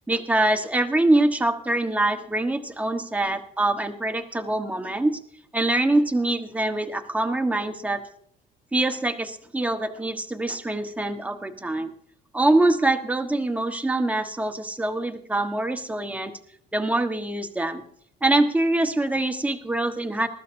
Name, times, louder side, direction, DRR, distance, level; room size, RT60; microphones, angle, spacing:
voice 1, 0.1-5.2 5.5-8.0 8.7-11.9 12.3-16.3 16.7-17.8 18.2-20.3, right 2 dB, 10° right, 6 dB, 1.4 m, -24 dB
20.5 x 13.5 x 2.7 m, 0.65 s
cardioid pair, 110°, 17 cm